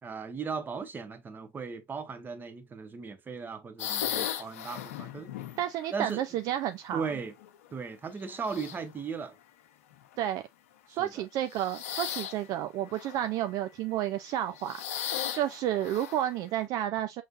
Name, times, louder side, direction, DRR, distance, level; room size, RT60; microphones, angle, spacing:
voice 1, 0.0-5.3 5.9-6.2 6.9-7.3 7.7-9.4 10.9-11.2, right 5 dB, 25° right, 1.1 m, -37 dB
sound 1, 3.8-6.1 7.0-7.7 8.3-9.0 9.9-10.1 11.4-12.5 12.9-13.5 14.3-16.4, left 10 dB, 75° left, 0.8 m, -37 dB
voice 2, 5.6-7.1 10.2-10.4 10.9-17.2, right 12 dB, 50° right, 0.5 m, -31 dB
5.7 x 3.2 x 2.5 m
hypercardioid pair, 90°, 8 cm